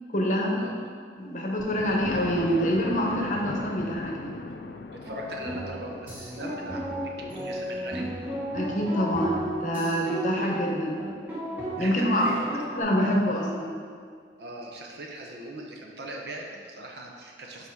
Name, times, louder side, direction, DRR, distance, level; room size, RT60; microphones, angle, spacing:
voice 1, 0.1-0.6 1.2-4.4 8.5-11.1 11.8-12.2 12.7-13.8, equal, 45° left, -1 dB, 0.8 m, -26 dB
Thunder, 1.6-11.3 11.9-12.0 12.4-12.5 12.7-12.8, left 3 dB, 65° left, 0.3 m, -39 dB
voice 2, 5.0-8.1 11.8-12.5 14.4-17.7, right 1 dB, 70° right, 0 dB, 0.8 m, -39 dB
sound 1, 5.1-12.8, right 1 dB, 10° right, 1.0 m, -35 dB
5.4 x 4.2 x 4.6 m, 2.1 s
head